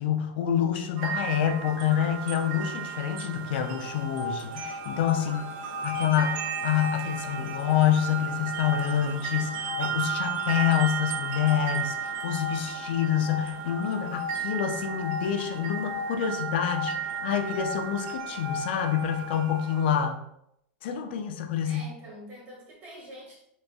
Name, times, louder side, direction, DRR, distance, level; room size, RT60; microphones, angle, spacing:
voice 1, 0.0-5.5 5.8-20.2 20.8-21.8, left 9 dB, 65° left, 5 dB, 0.5 m, -27 dB
sound 1, 1.0-20.0, right 8 dB, 55° right, 0.4 m, -35 dB
sound 2, 3.6-19.4, left 4 dB, 25° left, 0.7 m, -38 dB
voice 2, 21.6-23.4, equal, 35° right, -4 dB, 1.4 m, -45 dB
4.0 x 2.2 x 2.3 m, 0.77 s
supercardioid pair, 140°, 6 cm